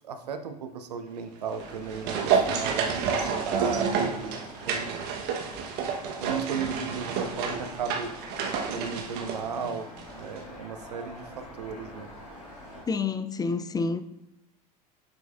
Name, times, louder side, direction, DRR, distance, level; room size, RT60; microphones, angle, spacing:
voice 1, 0.0-4.4 4.7-5.1 6.2-8.1 8.7-9.9 10.1-12.1, right 6 dB, 80° right, 0.7 m, -35 dB
sound 1, 1.5-10.1 10.4-10.5, right 6 dB, 55° right, 1.0 m, -30 dB
sound 2, 1.6-12.8, left 1 dB, 85° left, 2.6 m, -46 dB
voice 2, 12.9-14.0, left 4 dB, 20° left, 0.4 m, -28 dB
9.0 x 6.9 x 2.4 m
figure-of-eight pair, 75°, 20 cm